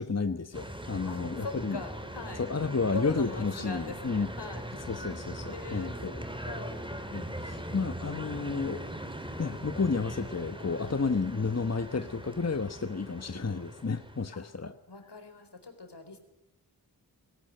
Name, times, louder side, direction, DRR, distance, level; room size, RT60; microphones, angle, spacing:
voice 1, 0.0-1.8 2.4-4.3 4.9-6.1 7.1-8.8 9.4-14.7, left 4 dB, 40° left, 9 dB, 1.1 m, -31 dB
sound 1, 0.5-14.2, right 1 dB, 10° right, 3.0 m, -41 dB
voice 2, 1.0-2.5 2.9-4.7 5.4-6.8 10.8-11.0 14.3-14.4 14.9-16.2, left 3 dB, 80° left, 7 dB, 4.2 m, -41 dB
19.5 x 18.5 x 9.0 m, 0.82 s
wide cardioid pair, 40°, 40 cm